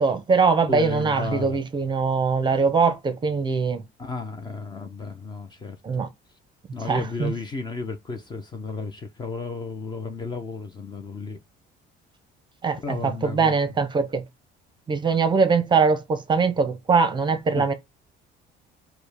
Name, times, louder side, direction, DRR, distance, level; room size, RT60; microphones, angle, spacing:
voice 1, 0.0-3.8 5.8-6.1 6.8-7.3 12.6-14.2 14.9-17.7, right 5 dB, 25° right, 0.7 m, -22 dB
voice 2, 0.7-1.6 4.0-6.0 6.7-11.4 12.8-13.5 17.5-17.7, left 3 dB, 20° left, 0.6 m, -33 dB
5.1 x 2.1 x 4.7 m
cardioid pair, 150°, 19 cm